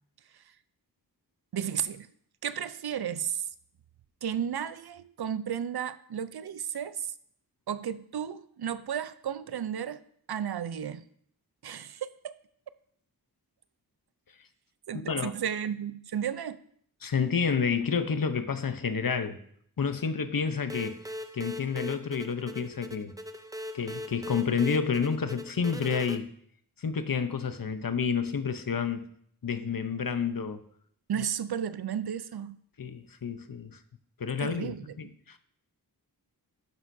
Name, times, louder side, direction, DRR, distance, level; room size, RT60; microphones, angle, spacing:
voice 1, 1.5-2.1 2.4-3.5 4.2-7.1 7.7-10.0 10.3-11.0 11.6-12.4 14.9-16.6 31.1-32.6 34.4-35.1, right 8 dB, 70° right, 0.6 m, -33 dB
voice 2, 14.9-15.3 17.0-19.4 19.8-21.0 21.3-23.1 23.7-26.3 26.8-29.1 29.4-30.6 31.2-31.3 32.8-33.8 34.2-35.4, left 6 dB, 60° left, 0.8 m, -29 dB
sound 1, 20.7-26.2, equal, 10° right, 0.6 m, -40 dB
12.0 x 9.8 x 2.7 m
wide cardioid pair, 100°, 40 cm